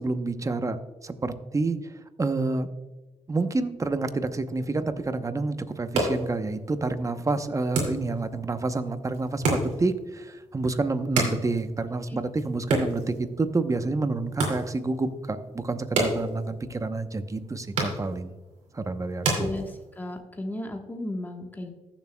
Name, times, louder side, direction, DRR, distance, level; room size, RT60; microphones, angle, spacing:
voice 1, 0.0-1.9 2.2-2.7 3.3-18.3 18.7-19.5, right 3 dB, 30° right, 10 dB, 0.8 m, -28 dB
sound 1, 5.7-20.2, right 2 dB, 85° right, 2.4 m, -33 dB
voice 2, 19.4-21.7, left 1 dB, 15° left, 2 dB, 1.2 m, -34 dB
15.0 x 7.2 x 2.2 m, 1.2 s
cardioid pair, 65°, 11 cm